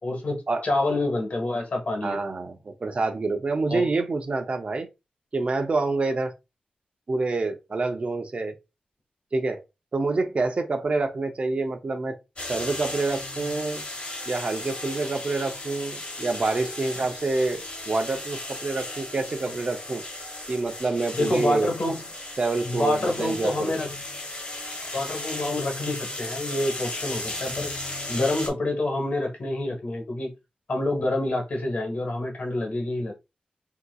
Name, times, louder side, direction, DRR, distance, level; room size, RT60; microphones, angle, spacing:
voice 1, 0.0-2.2 3.7-3.9 21.1-22.0 22.6-23.9 24.9-27.7 28.1-30.3 30.7-33.1, left 2 dB, 60° left, 1.3 m, -27 dB
voice 2, 2.0-4.9 5.3-6.3 7.1-8.5 9.3-9.6 9.9-12.2 12.5-13.8 14.3-20.0 20.5-21.7 22.4-23.7, right 3 dB, 50° right, 0.6 m, -27 dB
sound 1, 12.4-28.5, left 2 dB, 45° left, 1.3 m, -36 dB
3.6 x 2.9 x 2.3 m
wide cardioid pair, 100°, 3 cm